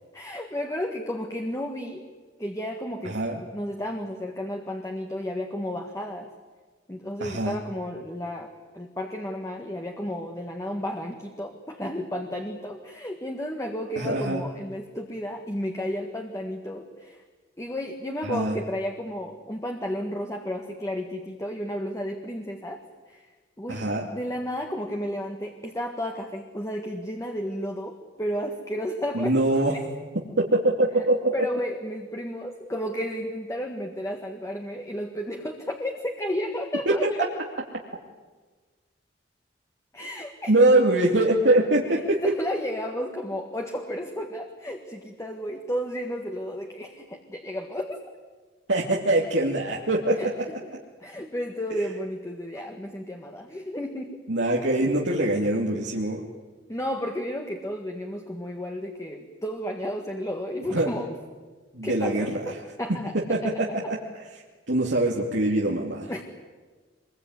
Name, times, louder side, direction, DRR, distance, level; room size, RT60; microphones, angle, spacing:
voice 1, 0.1-2.0 2.4-6.3 6.9-17.2 17.6-22.8 23.1-23.3 23.6-29.4 29.7-29.8 31.3-37.3 39.9-40.8 41.9-48.0 50.2-50.3 51.0-54.2 56.7-61.1 61.8-63.4 66.1-66.2, equal, 15° left, 3 dB, 1.8 m, -32 dB
voice 2, 3.0-3.4 7.2-7.6 13.9-14.4 18.2-18.6 23.7-24.1 29.1-29.8 30.4-31.5 36.9-37.1 40.5-42.2 48.7-50.3 54.3-56.2 60.7-60.9 61.7-62.6 63.3-64.0 64.7-66.1, right 2 dB, 85° right, -2 dB, 2.6 m, -23 dB
25.0 x 22.0 x 9.6 m, 1.4 s
head